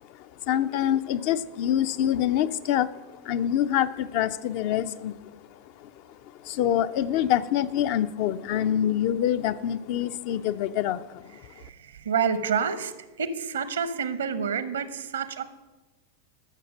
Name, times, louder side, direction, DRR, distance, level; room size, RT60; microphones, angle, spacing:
voice 1, 0.2-5.4 5.8-5.9 6.4-11.4, left 11 dB, 45° left, 12 dB, 0.5 m, -26 dB
voice 2, 11.4-12.9 13.2-15.4, right 6 dB, 65° right, 14 dB, 0.8 m, -28 dB
12.0 x 7.0 x 6.3 m, 1.2 s
figure-of-eight pair, 90°, 0 cm